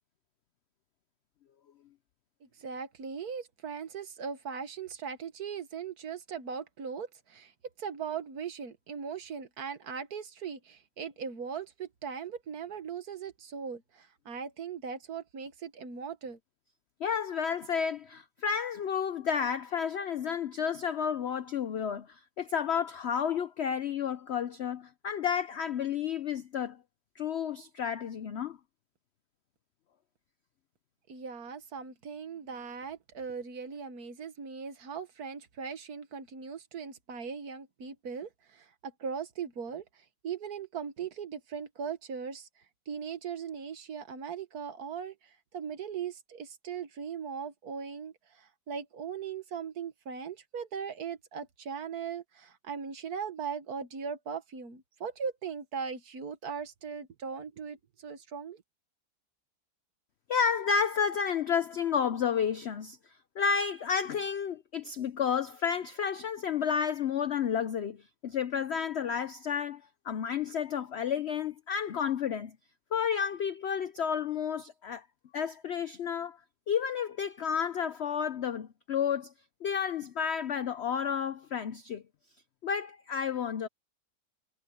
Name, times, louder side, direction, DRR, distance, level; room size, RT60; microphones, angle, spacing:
voice 1, 2.4-7.5 7.8-16.4 31.1-39.9 40.2-42.5 42.9-45.2 45.5-58.6, right 6 dB, 60° right, 1.8 m, -39 dB
voice 2, 17.0-26.8 27.2-28.6 60.3-63.0 63.4-68.0 68.2-72.5 72.9-75.0 75.3-76.4 76.7-79.3 79.6-82.0 82.6-83.7, left 7 dB, 70° left, 0.6 m, -31 dB
omnidirectional pair, 1.8 m